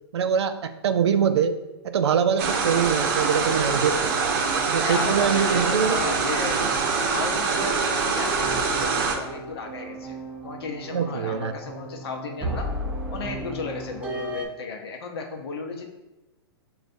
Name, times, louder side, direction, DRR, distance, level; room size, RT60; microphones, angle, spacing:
voice 1, 0.1-1.6 1.8-4.3 4.7-6.0 10.9-11.5, right 7 dB, 85° right, 10 dB, 0.4 m, -23 dB
sound 1, 2.4-9.2, right 5 dB, 45° right, 0.7 m, -24 dB
voice 2, 4.8-6.6 7.0-10.2 10.4-12.7 13.1-15.8, left 4 dB, 70° left, 3 dB, 0.8 m, -34 dB
sound 2, 8.3-14.5, right 1 dB, 10° right, 0.5 m, -35 dB
6.3 x 2.3 x 2.6 m, 1.0 s
hypercardioid pair, 135°, 14 cm